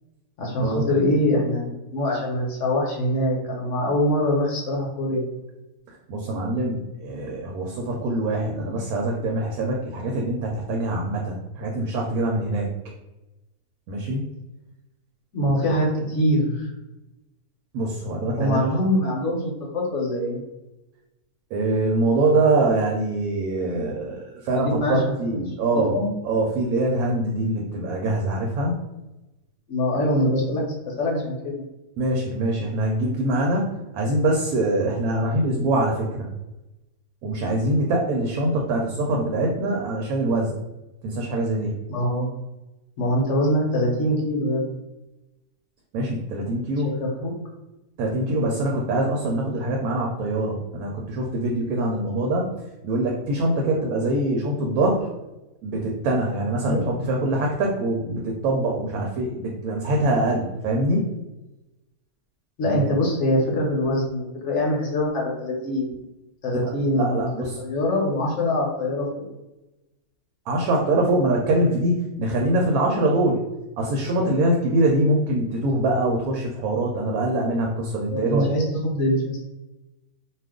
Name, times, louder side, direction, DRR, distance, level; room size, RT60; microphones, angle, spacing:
voice 1, 0.4-5.3 15.3-16.7 18.4-20.4 24.5-25.1 25.7-26.1 29.7-31.6 41.9-42.3 43.0-44.8 46.8-47.3 56.6-56.9 62.6-65.9 66.4-67.3 67.6-69.3 78.1-79.4, left 1 dB, 60° left, -1 dB, 0.9 m, -24 dB
voice 2, 6.1-12.7 13.9-14.2 15.4-15.5 17.7-18.6 21.5-26.0 26.2-28.8 32.0-33.7 33.9-36.3 37.2-40.5 41.0-41.7 45.9-46.9 48.0-52.5 52.8-55.1 55.6-61.1 62.6-62.9 66.9-67.6 70.5-73.4 73.8-78.5, right 2 dB, 80° right, 0 dB, 1.1 m, -24 dB
2.4 x 2.4 x 3.5 m, 1.0 s
omnidirectional pair, 1.6 m